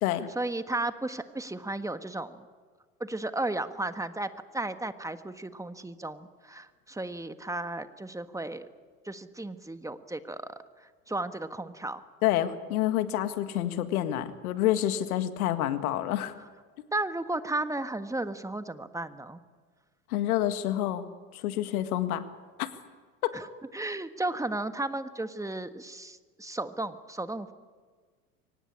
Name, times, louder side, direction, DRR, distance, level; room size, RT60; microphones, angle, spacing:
voice 1, 0.3-2.5 3.0-8.7 9.0-12.0 16.9-19.4 23.3-23.5 23.7-27.5, right 2 dB, 5° right, 10 dB, 1.5 m, -34 dB
voice 2, 12.2-16.3 20.1-21.1 21.3-22.2 22.6-22.7 23.2-23.4, left 13 dB, 75° left, 10 dB, 1.9 m, -28 dB
23.5 x 19.0 x 8.6 m, 1.5 s
hypercardioid pair, 80°, 44 cm